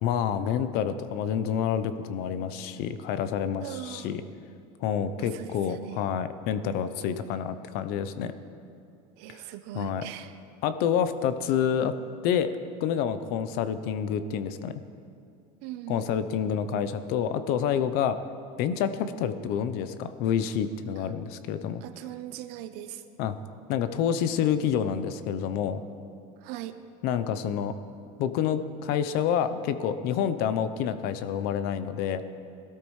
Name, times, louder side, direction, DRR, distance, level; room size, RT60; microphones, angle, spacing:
voice 1, 0.0-4.2 4.8-8.3 9.3-9.4 9.7-10.0 10.6-11.9 12.2-12.5 12.8-14.8 15.9-18.2 18.6-21.8 23.2-23.4 23.7-25.8 27.0-27.7 28.2-32.2, left 8 dB, 60° left, 12 dB, 0.7 m, -28 dB
voice 2, 3.6-4.1 5.2-6.0 9.2-10.3 15.6-16.5 21.0-21.1 21.8-23.0 26.4-26.8, right 13 dB, 65° right, 10 dB, 0.8 m, -40 dB
19.5 x 13.0 x 3.2 m, 2.6 s
supercardioid pair, 130°, 18 cm